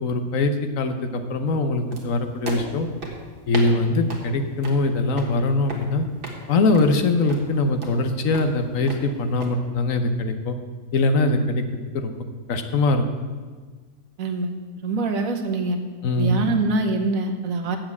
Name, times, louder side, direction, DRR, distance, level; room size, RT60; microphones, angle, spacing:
voice 1, 0.0-2.9 3.5-6.0 6.5-10.6 10.9-11.6 11.9-12.1 12.5-13.0 16.0-16.3, left 2 dB, 65° left, 8 dB, 1.1 m, -22 dB
sound 1, 1.9-9.5, right 2 dB, 35° right, 1.6 m, -37 dB
voice 2, 14.2-14.5 14.8-15.8 16.2-17.8, right 3 dB, 65° right, 5 dB, 1.4 m, -24 dB
7.3 x 7.3 x 8.2 m, 1.4 s
omnidirectional pair, 1.6 m